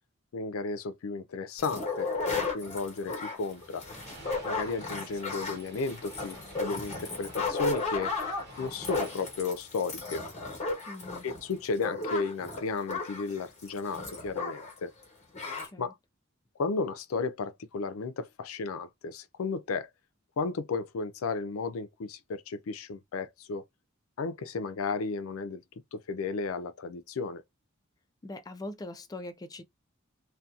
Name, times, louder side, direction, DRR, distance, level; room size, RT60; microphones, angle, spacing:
voice 1, 0.3-2.1 2.4-3.9 4.4-8.1 8.6-10.2 11.2-14.9 15.8-15.9 16.6-19.9 20.4-23.6 24.2-25.6 25.9-27.4, left 4 dB, 85° left, 0.4 m, -34 dB
sound 1, 1.6-14.8 15.0-15.1 15.3-15.7, left 3 dB, 35° left, 1.1 m, -35 dB
sound 2, 3.4-10.8, right 2 dB, 55° right, 1.0 m, -52 dB
voice 2, 10.9-11.3 15.7-15.9 28.2-29.6, left 2 dB, 20° left, 0.3 m, -41 dB
2.7 x 2.2 x 2.3 m
head